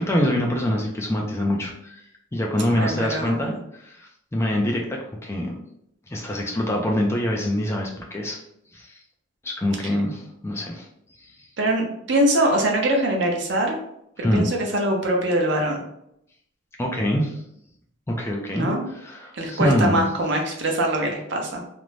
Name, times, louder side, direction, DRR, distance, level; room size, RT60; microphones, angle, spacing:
voice 1, 0.0-2.0 2.3-4.9 5.2-5.6 6.1-8.4 8.7-9.0 9.4-10.9 14.2-14.5 16.8-17.4 18.1-18.7 19.0-20.0, left 1 dB, 15° left, 0 dB, 0.3 m, -24 dB
voice 2, 2.7-3.6 11.6-13.8 14.2-15.9 18.5-18.8 19.3-21.6, right 1 dB, 60° right, 1 dB, 0.6 m, -23 dB
2.5 x 2.1 x 3.1 m, 0.75 s
head